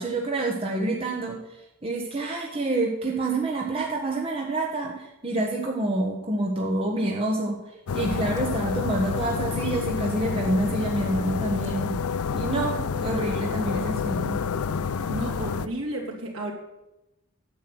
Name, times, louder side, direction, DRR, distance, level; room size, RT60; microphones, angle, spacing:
voice 1, 0.0-1.4 1.8-7.6 7.9-12.0 12.3-14.4, right 2 dB, 25° right, -1 dB, 1.3 m, -27 dB
sound 1, 7.9-15.7, left 5 dB, 85° left, 0.5 m, -28 dB
voice 2, 15.1-16.5, right 1 dB, 65° right, -3 dB, 3.4 m, -32 dB
9.8 x 8.5 x 6.2 m, 0.94 s
head